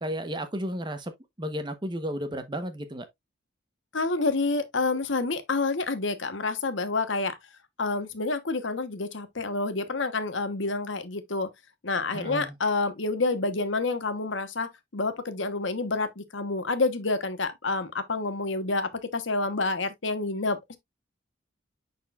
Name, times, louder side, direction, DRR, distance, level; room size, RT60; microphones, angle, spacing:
voice 1, 0.0-3.1 12.1-12.5, equal, 25° right, 0.9 m, -33 dB
voice 2, 3.9-7.4 7.8-11.5 11.8-20.8, left 3 dB, 70° left, 1.0 m, -28 dB
9.8 x 4.4 x 2.3 m
head